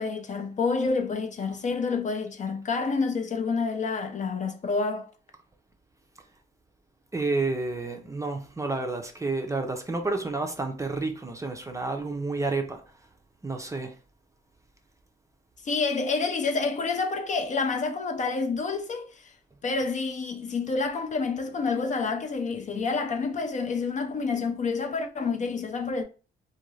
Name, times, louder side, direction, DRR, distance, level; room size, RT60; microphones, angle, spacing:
voice 1, 0.0-5.1 15.6-19.3 19.6-26.0, left 4 dB, 40° left, 0.5 m, -28 dB
voice 2, 7.1-12.8 13.4-13.9, right 3 dB, 15° right, 0.5 m, -30 dB
2.5 x 2.3 x 3.1 m
cardioid pair, 90°, 20 cm